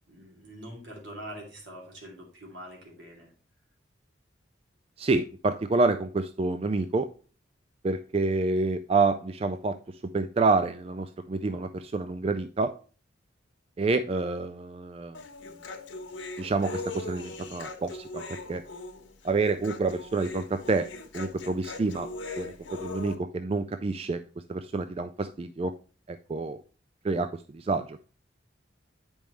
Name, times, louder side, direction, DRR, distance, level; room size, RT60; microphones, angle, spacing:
voice 1, 0.1-3.3, right 1 dB, 75° right, 0 dB, 2.8 m, -44 dB
voice 2, 5.0-7.1 7.8-12.7 13.8-15.2 16.4-18.6 19.2-20.9 21.1-22.1 22.4-24.2 24.5-25.7 26.1-26.6 27.0-28.0, right 3 dB, 30° right, 9 dB, 0.3 m, -28 dB
Human voice, 15.1-23.2, left 3 dB, 80° left, 1.3 m, -40 dB
8.9 x 5.3 x 3.1 m, 0.39 s
head